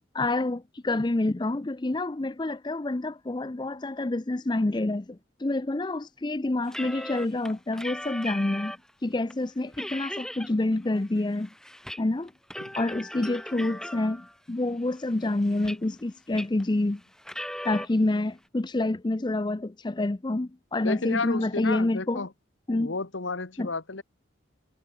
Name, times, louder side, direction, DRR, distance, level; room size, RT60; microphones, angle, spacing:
voice 1, 0.1-8.8 9.0-11.5 12.0-12.3 12.8-17.0 17.6-22.3 22.7-22.9 23.6-23.7, left 2 dB, 20° left, 0.5 m, -28 dB
sound 1, 6.7-8.9 9.3-9.4 9.7-10.5 10.9-12.0 12.3-14.3 14.9-16.0 16.3-16.7 17.2-17.9, left 1 dB, 5° left, 2.3 m, -38 dB
voice 2, 20.8-22.3 22.8-24.0, left 3 dB, 75° left, 1.5 m, -32 dB
head